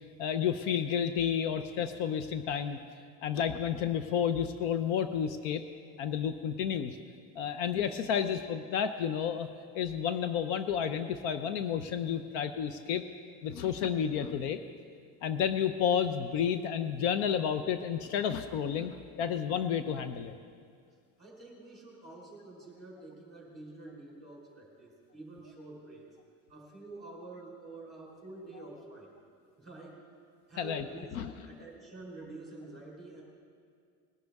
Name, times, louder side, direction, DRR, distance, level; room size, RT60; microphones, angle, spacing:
voice 1, 0.2-2.8 3.2-5.6 6.0-7.0 7.4-9.5 9.7-13.0 13.4-14.6 15.2-20.3 30.6-30.8 31.2-31.3, left 8 dB, 70° left, 10 dB, 0.7 m, -31 dB
voice 2, 21.2-26.1 26.5-29.1 29.6-30.0 30.5-33.2, right 2 dB, ahead, -4 dB, 4.0 m, -48 dB
21.0 x 12.0 x 3.6 m, 2.2 s
cardioid pair, 160°, 39 cm